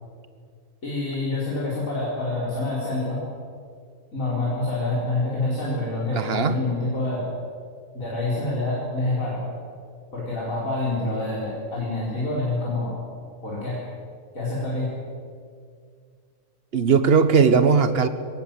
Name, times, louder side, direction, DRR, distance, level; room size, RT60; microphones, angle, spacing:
voice 1, 0.8-3.2 4.1-7.2 7.9-9.4 10.1-12.9 13.4-13.8 14.4-14.9, left 2 dB, 80° left, -7 dB, 5.1 m, -27 dB
voice 2, 6.1-6.6 16.7-18.1, right 5 dB, 50° right, 11 dB, 1.4 m, -18 dB
22.5 x 18.5 x 7.6 m, 2.2 s
omnidirectional pair, 1.4 m